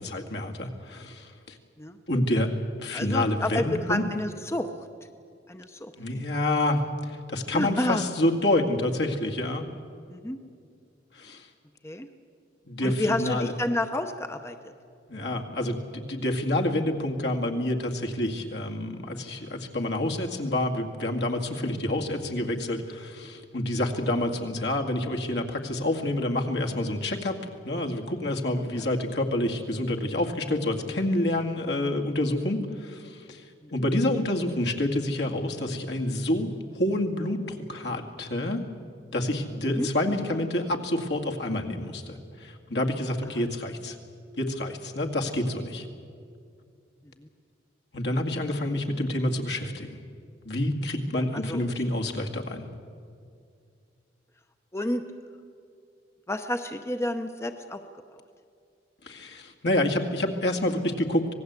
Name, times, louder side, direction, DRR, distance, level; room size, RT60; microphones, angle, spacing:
voice 1, 0.0-1.6 2.1-2.5 2.8-4.1 6.0-9.6 11.1-11.5 12.7-13.5 15.1-27.4 27.6-33.4 33.7-38.6 39.1-44.0 44.4-45.9 47.9-49.9 50.4-52.7 59.0-61.3, left 1 dB, 70° left, 2 dB, 2.2 m, -28 dB
voice 2, 2.9-4.7 5.5-5.9 7.5-8.0 10.1-10.4 11.8-12.1 12.8-14.6 28.8-28.9 39.6-39.9 47.2-47.3 51.3-51.6 54.7-55.0 56.3-57.8, left 1 dB, 15° left, 7 dB, 0.8 m, -30 dB
26.0 x 19.0 x 8.2 m, 2.3 s
head